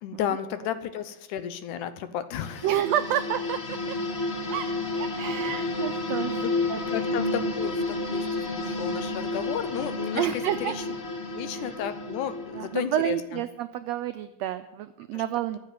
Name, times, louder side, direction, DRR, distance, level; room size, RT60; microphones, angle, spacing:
voice 1, 0.0-2.7 6.4-10.7 11.3-13.4 15.1-15.2, left 9 dB, 85° left, 11 dB, 2.3 m, -33 dB
sound 1, 2.4-12.8, left 2 dB, 65° left, 0.6 m, -31 dB
voice 2, 2.6-4.0 4.5-4.7 5.0-6.4 6.7-6.8 10.1-10.8 11.5-11.8 12.5-15.6, right 11 dB, 85° right, 9 dB, 1.5 m, -29 dB
14.0 x 7.3 x 7.6 m, 0.99 s
omnidirectional pair, 3.6 m